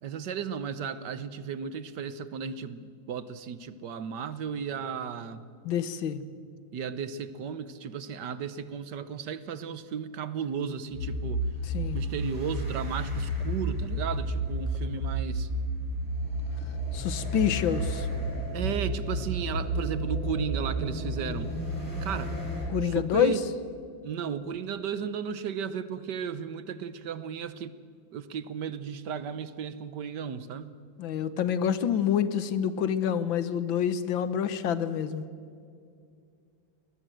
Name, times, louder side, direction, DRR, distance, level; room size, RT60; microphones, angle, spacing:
voice 1, 0.0-5.5 6.7-11.4 11.9-15.5 18.5-21.5 22.0-22.3 22.8-23.4 24.0-27.7 28.1-30.7, right 7 dB, 65° right, 14 dB, 1.5 m, -34 dB
voice 2, 5.7-6.2 11.7-12.0 16.9-18.1 22.7-23.4 31.0-35.2, left 9 dB, 80° left, 13 dB, 1.8 m, -27 dB
sound 1, 10.9-22.7, right 1 dB, 10° left, 7.6 m, -31 dB
22.0 x 19.5 x 7.7 m, 2.3 s
omnidirectional pair, 2.1 m